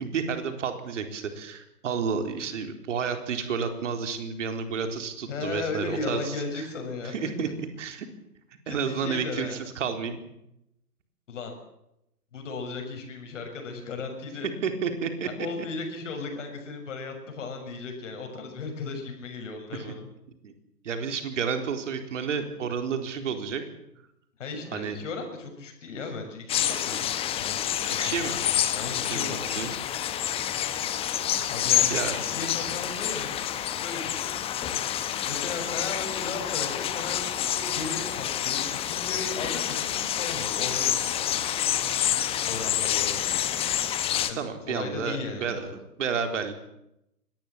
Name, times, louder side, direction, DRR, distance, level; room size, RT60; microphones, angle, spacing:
voice 1, 0.0-6.7 7.0-7.5 7.8-8.1 8.7-10.2 14.6-15.3 19.7-19.9 20.4-20.5 20.8-23.6 24.7-25.0 28.0-28.4 29.0-29.8 31.9-32.3 44.4-45.7 46.0-46.5, right 6 dB, 50° right, 7 dB, 4.1 m, -31 dB
voice 2, 5.3-7.3 8.7-9.6 11.3-11.6 12.3-14.5 15.4-20.1 24.4-27.0 27.4-28.4 28.7-29.8 31.5-33.3 33.7-34.3 35.3-41.4 42.4-43.2 44.3-45.7, left 4 dB, 50° left, 4 dB, 6.7 m, -36 dB
sound 1, 26.5-44.3, left 11 dB, 10° left, 1.2 m, -28 dB
24.0 x 19.5 x 7.4 m, 0.84 s
figure-of-eight pair, 125°, 47 cm